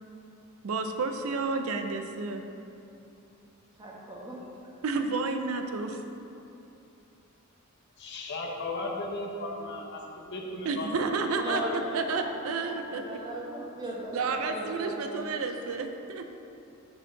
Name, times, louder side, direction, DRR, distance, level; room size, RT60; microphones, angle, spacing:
voice 1, 0.6-2.4 4.8-6.0 10.6-13.0 14.1-16.4, right 4 dB, 90° right, 6 dB, 0.5 m, -31 dB
voice 2, 3.8-4.4 11.4-15.4, right 1 dB, 20° right, -3 dB, 1.1 m, -38 dB
voice 3, 8.0-10.9 11.4-11.8, left 2 dB, 55° left, 0 dB, 0.8 m, -36 dB
5.3 x 4.4 x 5.8 m, 2.8 s
head